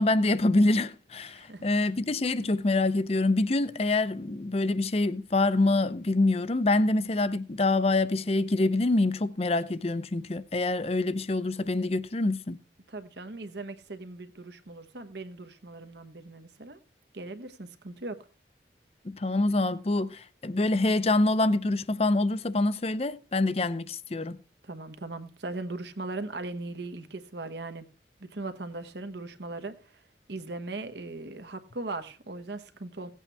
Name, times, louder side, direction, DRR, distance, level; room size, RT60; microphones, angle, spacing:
voice 1, 0.0-12.6 19.0-24.4, left 2 dB, 35° left, 0.5 m, -26 dB
voice 2, 1.3-1.9 12.9-16.8 17.1-18.2 24.6-27.8 28.2-30.0 30.3-33.1, right 2 dB, 70° right, 1.2 m, -39 dB
17.0 x 8.3 x 3.4 m
head